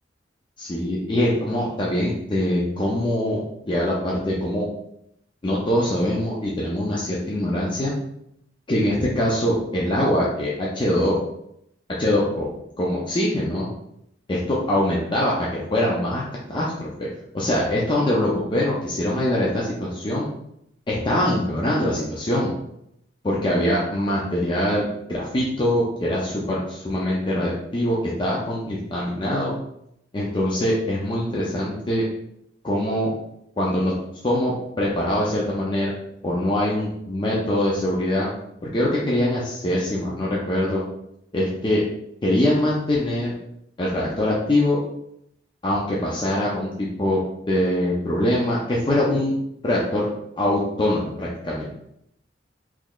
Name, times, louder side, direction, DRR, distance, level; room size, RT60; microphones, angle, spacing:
voice 1, 0.6-4.7 5.4-7.9 8.7-11.2 11.9-12.5 12.8-13.7 14.3-16.2 16.5-17.1 17.3-20.3 20.9-22.5 23.2-29.6 30.1-32.1 32.6-33.1 33.6-33.9 34.2-35.9 36.2-38.3 38.6-40.8 41.3-41.8 42.2-43.3 43.8-44.8 45.6-49.3 49.6-50.1 50.4-51.7, left 1 dB, 25° left, -5 dB, 0.5 m, -23 dB
3.8 x 3.1 x 2.3 m, 0.77 s
head